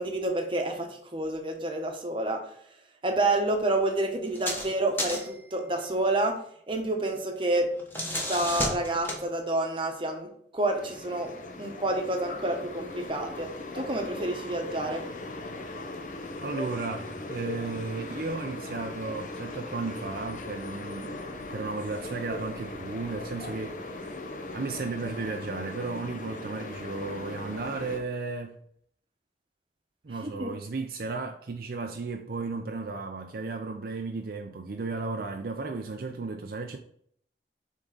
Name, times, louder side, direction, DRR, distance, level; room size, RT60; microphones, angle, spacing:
voice 1, 0.0-2.4 3.0-6.4 6.7-7.7 8.1-13.5 13.7-15.0 30.2-30.5, right 2 dB, 30° right, 1.0 m, -29 dB
sound 1, 4.3-4.7 5.0-5.4 7.6-9.2, left 1 dB, 10° left, 1.2 m, -32 dB
sound 2, 10.7-28.0, left 2 dB, 45° left, 0.8 m, -39 dB
voice 2, 16.4-24.1 24.5-28.5 30.0-36.8, right 3 dB, 55° right, 0.5 m, -34 dB
7.5 x 3.7 x 3.8 m
head